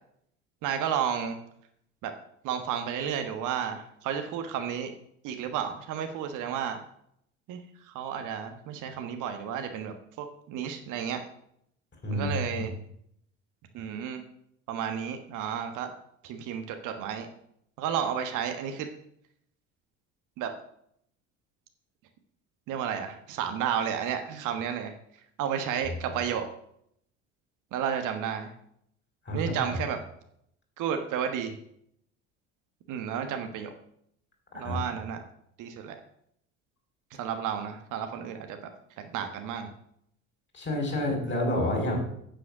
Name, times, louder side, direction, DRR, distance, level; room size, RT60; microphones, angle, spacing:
voice 1, 0.6-1.4 2.0-2.1 2.4-4.9 5.2-6.8 7.5-7.6 7.9-11.2 12.1-12.7 13.7-14.2 14.7-15.9 16.2-17.3 17.8-18.9 20.4-20.5 22.7-24.9 25.4-26.5 27.7-28.5 29.3-30.0 30.8-31.5 32.9-33.7 34.5-35.2 35.6-36.0 37.2-38.7 39.0-39.7, right 8 dB, 55° right, 6 dB, 1.4 m, -32 dB
voice 2, 12.0-12.7 25.8-26.0 29.3-29.8 34.5-34.8 40.5-42.0, left 1 dB, 30° left, 1 dB, 5.5 m, -29 dB
9.0 x 7.7 x 6.2 m, 0.71 s
figure-of-eight pair, 60°, 37 cm